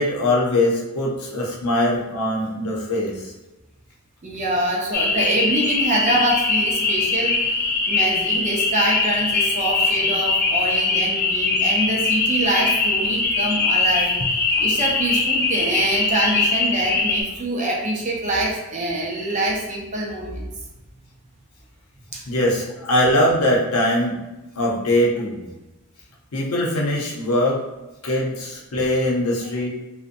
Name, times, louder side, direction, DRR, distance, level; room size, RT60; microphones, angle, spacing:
voice 1, 0.0-3.3 22.3-24.2 24.6-25.4 26.3-27.6 28.0-29.7, left 1 dB, 80° left, -3 dB, 0.6 m, -21 dB
voice 2, 4.2-14.2 14.6-20.5 22.1-22.2, right 1 dB, 30° right, -2 dB, 0.5 m, -25 dB
sound 1, 4.9-17.2, left 3 dB, 45° left, 0.3 m, -21 dB
2.5 x 2.1 x 2.5 m, 1.0 s
head